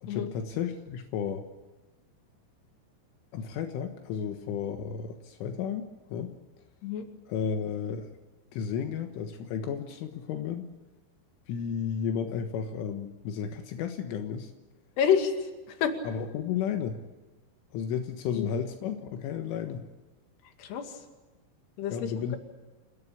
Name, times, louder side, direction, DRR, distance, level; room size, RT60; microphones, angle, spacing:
voice 1, 0.0-1.5 3.3-6.3 7.3-8.1 8.5-10.7 11.5-14.5 16.0-17.0 17.7-19.9 21.9-22.4, left 7 dB, 80° left, 6 dB, 3.9 m, -33 dB
voice 2, 15.0-15.9 18.4-18.5 20.6-21.0 21.8-22.4, left 7 dB, 60° left, 5 dB, 4.1 m, -28 dB
29.5 x 17.5 x 8.6 m, 1.2 s
omnidirectional pair, 5.7 m